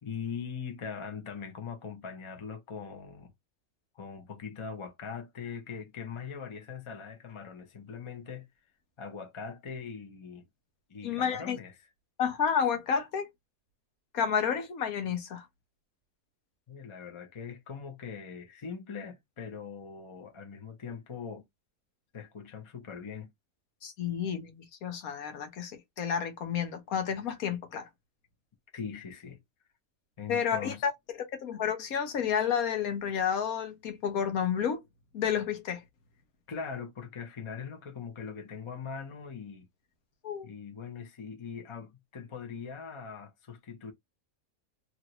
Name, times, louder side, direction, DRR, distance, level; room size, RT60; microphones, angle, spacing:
voice 1, 0.0-3.3 3.9-8.4 9.0-10.5 10.9-11.9 16.7-21.5 22.1-23.3 28.7-29.4 30.2-30.9 36.5-39.7 40.4-43.9, left 6 dB, 30° left, 0.6 m, -41 dB
voice 2, 11.0-11.6 12.2-13.3 14.1-15.4 23.8-25.7 26.0-27.9 30.3-30.9 31.4-34.8 35.1-35.8 40.2-40.5, left 7 dB, 80° left, 1.4 m, -30 dB
3.0 x 2.6 x 2.9 m
omnidirectional pair, 1.5 m